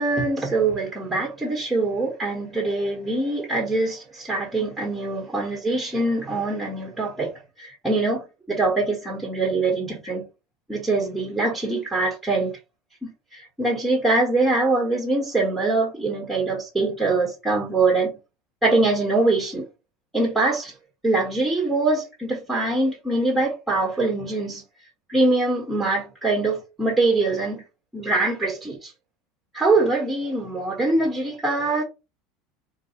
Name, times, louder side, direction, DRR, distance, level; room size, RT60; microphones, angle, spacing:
voice 1, 0.0-10.2 10.7-12.6 13.3-18.1 18.6-19.6 20.1-20.7 21.0-24.6 25.1-27.6 27.9-28.9 29.5-31.8, right 2 dB, 5° right, 1.3 m, -23 dB
4.4 x 2.0 x 3.0 m
figure-of-eight pair, 75°, 0 cm